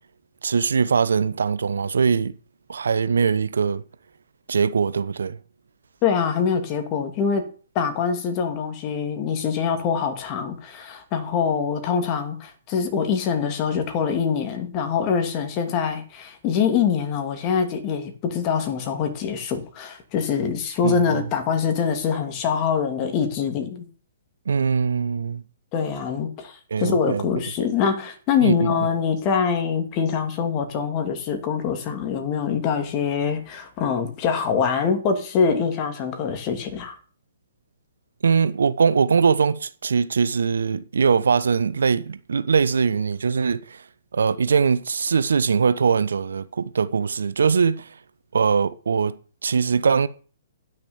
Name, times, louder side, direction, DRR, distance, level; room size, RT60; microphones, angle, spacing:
voice 1, 0.4-2.3 2.7-3.8 4.5-5.4 20.8-21.2 24.5-25.4 26.7-27.3 28.4-28.7 38.2-43.8 44.1-47.9 48.3-49.2 49.4-50.1, right 5 dB, 75° right, 0.7 m, -21 dB
voice 2, 6.0-7.4 7.7-23.9 25.7-37.0, left 6 dB, 35° left, 2.6 m, -24 dB
10.0 x 6.6 x 7.1 m
hypercardioid pair, 130°, 0 cm